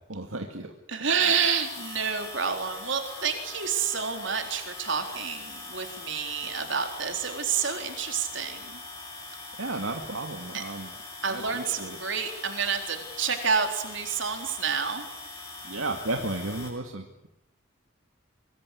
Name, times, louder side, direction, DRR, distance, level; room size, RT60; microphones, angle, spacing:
voice 1, 0.1-0.7 9.5-10.9 11.3-12.0 15.6-17.3, right 2 dB, 80° right, 4 dB, 2.3 m, -33 dB
voice 2, 0.9-8.8 10.5-10.6 11.2-15.1, right 6 dB, 60° right, 5 dB, 4.1 m, -29 dB
sound 1, 1.2-16.7, left 3 dB, 15° left, 7.4 m, -42 dB
24.5 x 22.5 x 8.5 m, 0.83 s
head